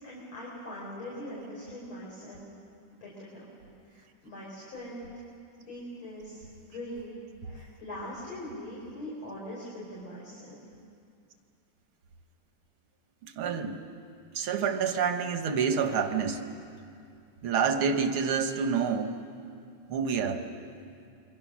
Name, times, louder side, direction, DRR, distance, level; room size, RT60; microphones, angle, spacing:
voice 1, 0.0-2.5 2.9-3.6 3.9-5.1 5.6-7.2 7.5-10.6, left 1 dB, 70° left, -6 dB, 5.3 m, -42 dB
voice 2, 13.2-13.8 14.3-16.4 17.4-19.2 19.9-20.4, right 6 dB, 90° right, 6 dB, 2.2 m, -28 dB
28.5 x 23.5 x 6.3 m, 2.5 s
omnidirectional pair, 2.3 m